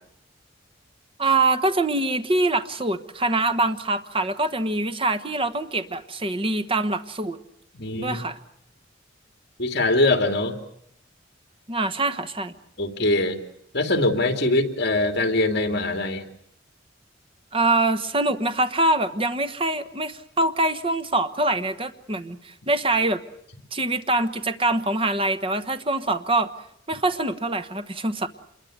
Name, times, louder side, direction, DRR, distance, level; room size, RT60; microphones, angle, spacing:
voice 1, 1.2-7.4 8.0-8.4 11.7-12.5 17.5-23.2 23.7-26.5 26.9-28.3, right 2 dB, 30° right, 9 dB, 1.2 m, -24 dB
voice 2, 7.7-8.2 9.6-10.5 12.8-13.4 13.7-16.2, left 2 dB, 55° left, 6 dB, 2.8 m, -22 dB
27.0 x 22.0 x 7.9 m, 0.69 s
head